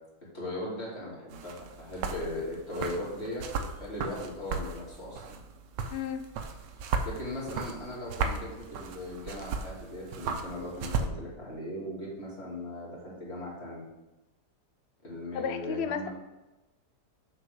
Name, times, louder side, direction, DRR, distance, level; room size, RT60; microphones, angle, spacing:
voice 1, 0.3-3.5 3.8-5.4 7.0-13.9 15.0-16.1, left 1 dB, 35° left, -6 dB, 3.1 m, -38 dB
sound 1, 1.3-11.1, right 5 dB, 85° right, 1.4 m, -36 dB
voice 2, 5.9-6.3 15.3-16.1, left 7 dB, 80° left, 8 dB, 0.5 m, -33 dB
7.0 x 4.7 x 6.7 m, 1.1 s
omnidirectional pair, 1.8 m